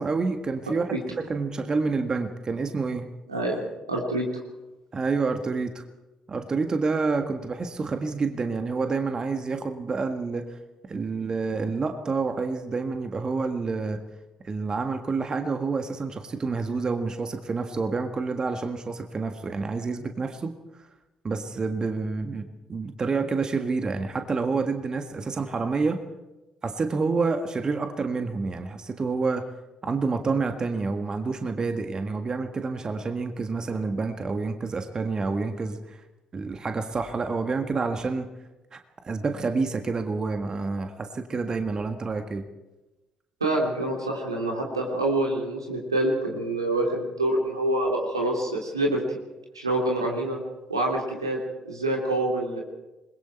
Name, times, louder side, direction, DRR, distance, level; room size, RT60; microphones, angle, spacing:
voice 1, 0.0-3.1 4.9-5.8 6.3-10.6 10.9-14.0 14.4-20.5 20.8-20.9 21.2-26.0 26.6-29.5 29.8-36.0 36.3-38.3 38.7-38.8 39.0-42.4, right 4 dB, 30° right, 6 dB, 1.7 m, -28 dB
voice 2, 3.3-3.6 3.9-4.2 43.4-49.2 49.5-50.4 50.7-51.4 51.6-52.6, right 1 dB, 85° right, -1 dB, 3.3 m, -26 dB
27.5 x 21.5 x 4.5 m, 1.0 s
figure-of-eight pair, 45°, 2 cm